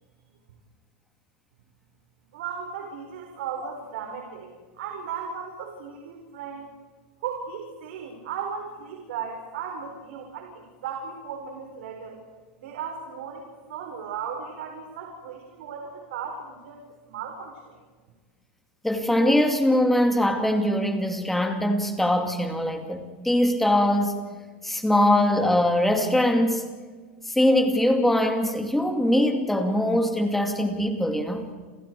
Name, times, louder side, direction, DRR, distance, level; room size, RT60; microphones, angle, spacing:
voice 1, 2.3-6.7 7.2-12.2 12.6-17.8, right 6 dB, 75° right, 2 dB, 5.0 m, -36 dB
voice 2, 18.8-24.2 24.6-26.7 27.3-31.5, left 1 dB, 5° left, 4 dB, 2.5 m, -22 dB
29.0 x 29.0 x 4.8 m, 1.5 s
supercardioid pair, 160°, 6 cm